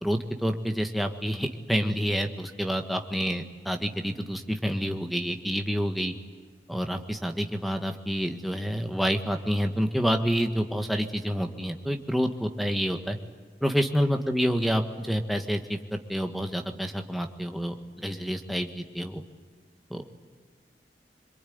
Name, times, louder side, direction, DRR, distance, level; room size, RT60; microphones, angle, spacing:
voice 1, 0.0-6.1 6.7-13.2 13.6-19.2 19.9-20.2, equal, ahead, 4 dB, 1.6 m, -28 dB
26.5 x 23.0 x 9.5 m, 1.5 s
head